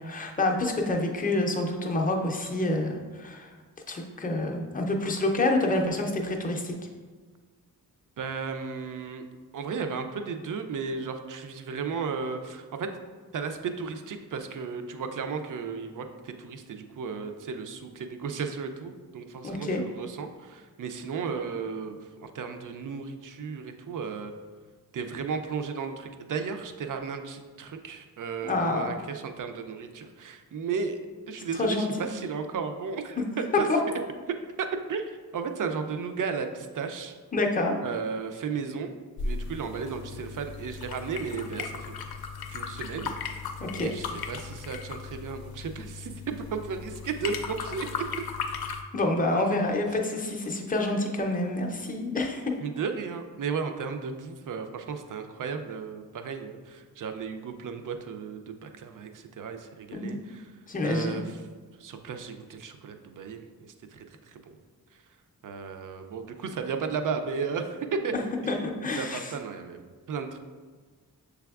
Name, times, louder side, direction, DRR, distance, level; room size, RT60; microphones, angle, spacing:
voice 1, 0.0-3.5 3.9-6.8 19.4-19.8 28.4-28.9 31.6-31.9 33.5-33.8 37.3-37.7 43.6-43.9 48.9-52.4 59.9-60.2 60.7-61.2 68.5-69.3, left 2 dB, 25° left, 1 dB, 0.5 m, -27 dB
voice 2, 8.2-9.3 9.5-13.0 13.3-24.3 24.9-31.0 31.3-33.2 33.5-33.7 34.3-37.2 37.8-41.9 42.5-43.5 43.8-48.0 52.6-60.5 60.8-61.4 61.8-64.6 65.4-68.1 68.4-68.6 69.0-69.8 70.1-70.4, right 5 dB, 60° right, 7 dB, 0.4 m, -34 dB
sound 1, 39.2-48.8, left 5 dB, 80° left, 0.5 m, -37 dB
6.7 x 3.4 x 2.3 m, 1.4 s
wide cardioid pair, 150°, 36 cm